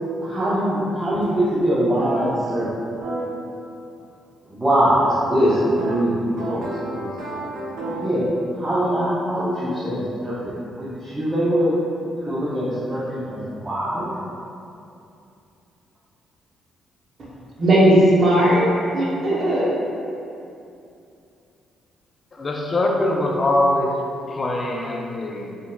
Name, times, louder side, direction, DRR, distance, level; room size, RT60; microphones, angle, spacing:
voice 1, 0.2-2.7 2.9-3.1 4.5-6.7 6.9-7.1 7.8-8.3 8.5-11.8 12.2-14.1, equal, 20° right, -11 dB, 0.6 m, -22 dB
sound 1, 3.0-3.2 5.8-8.2, right 2 dB, 85° right, 0.6 m, -31 dB
voice 2, 17.6-19.7, right 1 dB, 50° right, -6 dB, 0.8 m, -17 dB
voice 3, 22.3-24.0 24.3-25.5, left 1 dB, 35° left, 0 dB, 0.4 m, -22 dB
3.7 x 2.5 x 2.2 m, 2.6 s
cardioid pair, 90°, 0 cm